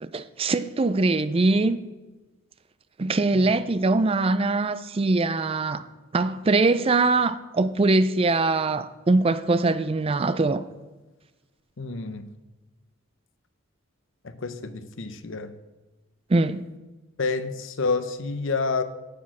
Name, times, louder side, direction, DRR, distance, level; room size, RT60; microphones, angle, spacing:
voice 1, 0.0-1.8 3.0-5.9 6.1-10.6 16.3-16.6, right 3 dB, 25° right, 0.4 m, -22 dB
voice 2, 11.8-12.3 14.2-15.5 17.2-18.8, left 4 dB, 60° left, 0.8 m, -28 dB
8.5 x 8.3 x 6.1 m
head